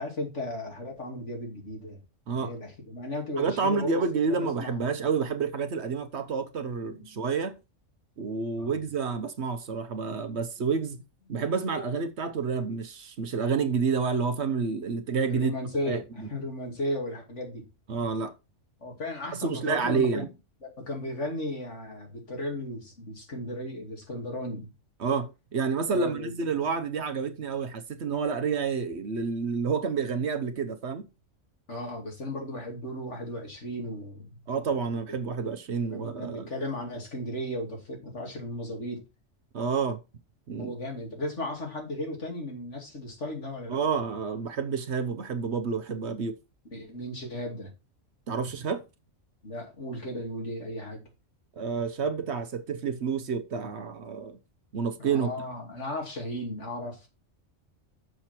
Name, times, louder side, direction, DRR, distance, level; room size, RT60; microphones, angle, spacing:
voice 1, 0.0-2.0 2.4-3.9 4.3-4.8 6.9-7.1 8.5-8.8 15.3-17.7 18.8-20.1 20.6-24.7 25.9-26.3 31.7-34.3 35.9-39.0 40.6-43.8 46.7-47.7 49.4-51.1 55.0-57.1, left 1 dB, 65° left, 3.0 m, -35 dB
voice 2, 3.4-7.6 8.2-11.0 11.3-15.5 15.9-16.3 17.9-18.3 19.4-20.3 25.0-31.1 34.5-36.5 39.5-40.0 40.5-40.7 43.7-46.4 48.3-48.8 51.6-54.4 54.7-55.3, right 5 dB, 60° right, 1.1 m, -29 dB
6.8 x 6.3 x 4.4 m
omnidirectional pair, 1.3 m